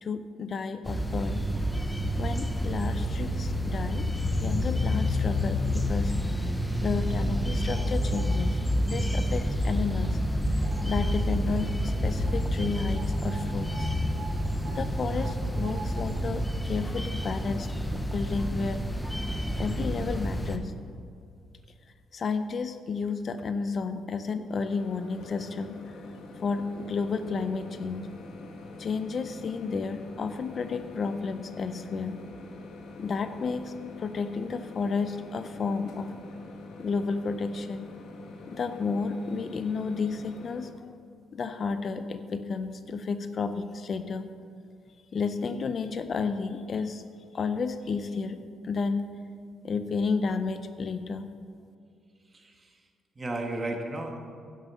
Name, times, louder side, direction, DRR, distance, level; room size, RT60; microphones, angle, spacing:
voice 1, 0.0-1.4 2.2-4.1 4.4-6.1 6.7-8.6 8.8-10.2 10.8-13.9 14.7-18.8 19.6-20.7 22.1-25.8 26.4-28.1 28.8-32.2 33.0-33.7 34.0-36.1 36.8-37.9 38.5-40.9 41.3-44.3 45.1-47.0 47.3-49.1 49.6-51.3, left 4 dB, 50° left, 10 dB, 0.6 m, -32 dB
sound 1, 0.8-20.6, equal, 10° left, 0.8 m, -28 dB
sound 2, 7.2-8.9 9.3-9.5 10.0-11.1 11.4-11.5 11.8-18.8 19.1-19.3 20.2-20.3 20.6-20.7, right 4 dB, 65° right, 2.4 m, -48 dB
Microwave oven, 24.5-40.7, left 3 dB, 85° left, 1.4 m, -45 dB
voice 2, 52.3-52.8 53.1-54.2, right 2 dB, 30° right, 3 dB, 1.6 m, -34 dB
10.5 x 7.9 x 6.3 m, 2.3 s
cardioid pair, 90°, 0 cm